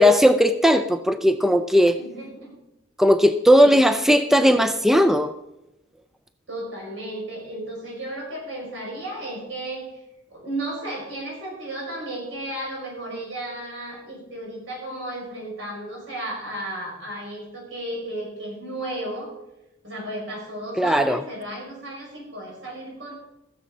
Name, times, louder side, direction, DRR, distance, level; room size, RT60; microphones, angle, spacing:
voice 1, 0.0-2.0 3.0-5.3 20.8-21.2, equal, ahead, 8 dB, 0.4 m, -17 dB
voice 2, 2.0-2.5 3.5-3.7 4.4-4.5 6.5-10.0 10.3-19.3 19.8-23.1, right 1 dB, 80° right, -2 dB, 5.8 m, -34 dB
15.0 x 7.2 x 5.5 m, 0.91 s
head